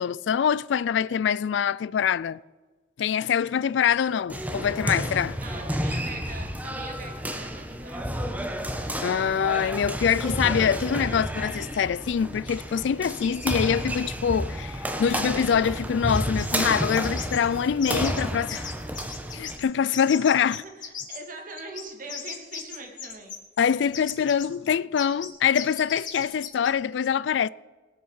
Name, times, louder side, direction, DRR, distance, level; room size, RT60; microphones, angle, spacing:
voice 1, 0.0-2.4 3.0-5.4 9.0-18.7 19.3-20.6 23.6-27.5, left 7 dB, 70° left, 0.3 m, -24 dB
sound 1, 4.3-19.6, equal, 10° right, 1.3 m, -31 dB
voice 2, 5.4-8.3 20.4-23.3, right 3 dB, 45° right, 2.4 m, -42 dB
sound 2, 16.1-17.4 17.8-18.2 18.5-19.7 19.9-21.2 21.6-23.6 23.9-24.5 25.0-25.3 25.5-26.7, left 7 dB, 45° left, 2.2 m, -37 dB
20.5 x 7.8 x 5.5 m
head